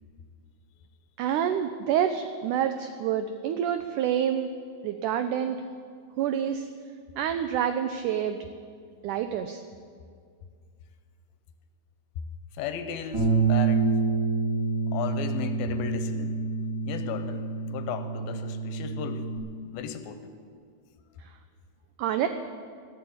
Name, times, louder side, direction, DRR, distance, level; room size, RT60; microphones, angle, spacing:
voice 1, 1.2-4.5 4.8-5.6 6.2-6.7 7.2-8.4 9.0-9.6 22.0-22.3, right 9 dB, 90° right, 8 dB, 1.8 m, -27 dB
voice 2, 12.5-14.0 14.9-16.4 16.9-19.3 19.7-20.3, left 7 dB, 75° left, 9 dB, 2.6 m, -35 dB
Bass guitar, 13.1-19.4, right 4 dB, 35° right, 4.0 m, -27 dB
13.5 x 11.0 x 8.6 m, 2.1 s
omnidirectional pair, 4.4 m